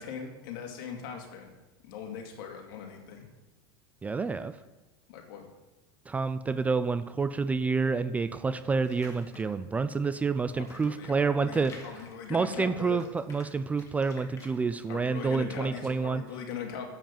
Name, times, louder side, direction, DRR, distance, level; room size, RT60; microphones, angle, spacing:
voice 1, 0.0-1.5 1.8-3.3 5.1-5.5 10.6-13.0 14.9-16.8, left 7 dB, 70° left, 3 dB, 2.2 m, -40 dB
voice 2, 4.0-4.5 6.1-11.7 12.3-16.2, right 4 dB, 10° right, 12 dB, 0.3 m, -28 dB
sound 1, 8.8-9.7 10.3-12.7 12.9-14.9, left 3 dB, 25° left, 1.9 m, -51 dB
7.8 x 7.4 x 7.2 m, 1.1 s
supercardioid pair, 145°, 12 cm